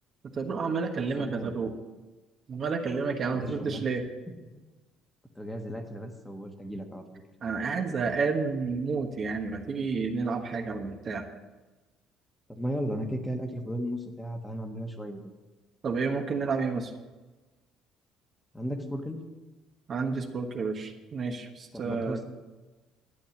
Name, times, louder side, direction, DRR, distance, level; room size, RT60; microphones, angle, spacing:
voice 1, 0.3-1.7 2.5-4.0 7.4-11.2 15.8-16.9 19.9-22.2, right 4 dB, 35° right, 4 dB, 1.2 m, -30 dB
voice 2, 1.0-1.6 3.3-3.9 5.3-7.2 12.5-15.2 18.5-19.2 21.7-22.2, equal, 5° left, 4 dB, 1.4 m, -35 dB
12.0 x 9.1 x 7.1 m, 1.2 s
cardioid pair, 140°, 0 cm